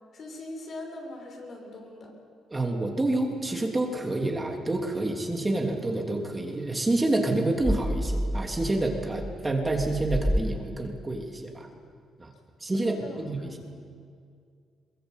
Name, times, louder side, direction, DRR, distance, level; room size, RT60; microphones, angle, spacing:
voice 1, 0.1-2.1 12.7-13.7, left 2 dB, 55° left, 2 dB, 6.3 m, -41 dB
voice 2, 2.5-11.7 12.2-12.3 12.6-12.9 13.2-13.5, right 2 dB, 20° right, 2 dB, 3.2 m, -28 dB
sound 1, 7.6-11.0, equal, ahead, 0.7 m, -30 dB
22.5 x 21.5 x 8.4 m, 2.2 s
cardioid pair, 90°, 0 cm